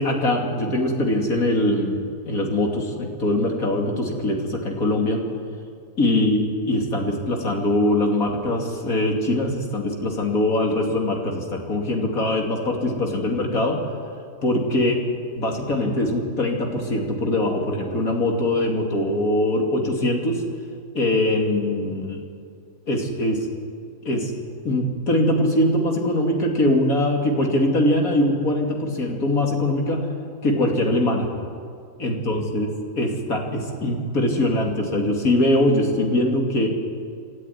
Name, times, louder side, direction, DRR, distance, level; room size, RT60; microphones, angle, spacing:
voice 1, 0.0-5.2 6.0-13.8 14.4-15.0 15.3-20.4 20.9-22.2 22.9-23.5 24.0-24.3 24.6-30.0 30.4-31.3 32.0-36.7, left 1 dB, 70° left, 1 dB, 3.2 m, -22 dB
28.5 x 13.0 x 9.7 m, 2.3 s
omnidirectional pair, 1.5 m